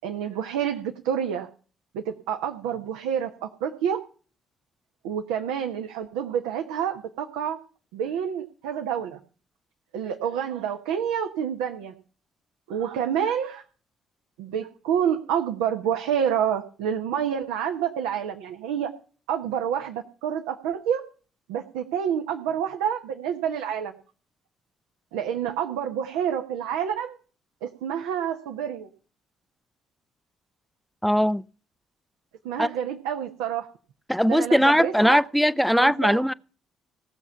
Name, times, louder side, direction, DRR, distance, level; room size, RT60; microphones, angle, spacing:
voice 1, 0.0-1.5 1.9-4.0 5.0-7.6 7.9-9.2 9.9-11.9 12.7-13.6 14.4-18.9 19.3-21.0 21.5-23.9 25.1-27.2 27.6-28.9 32.4-33.7 34.2-35.2 35.8-36.2, right 8 dB, 70° right, 1.1 m, -28 dB
voice 2, 31.0-31.4 32.6-32.7 34.1-36.3, equal, ahead, 0.5 m, -20 dB
18.0 x 7.2 x 5.7 m
figure-of-eight pair, 45°, 0 cm